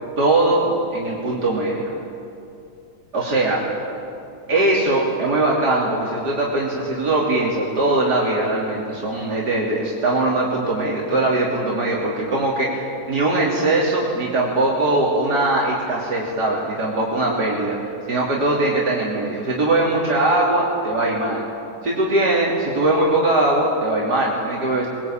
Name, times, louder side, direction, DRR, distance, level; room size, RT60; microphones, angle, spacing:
voice 1, 0.2-1.9 3.1-3.6 4.5-17.8 18.1-21.4 21.8-24.9, right 2 dB, 90° right, -5 dB, 3.7 m, -21 dB
22.5 x 22.0 x 8.9 m, 2.6 s
omnidirectional pair, 1.7 m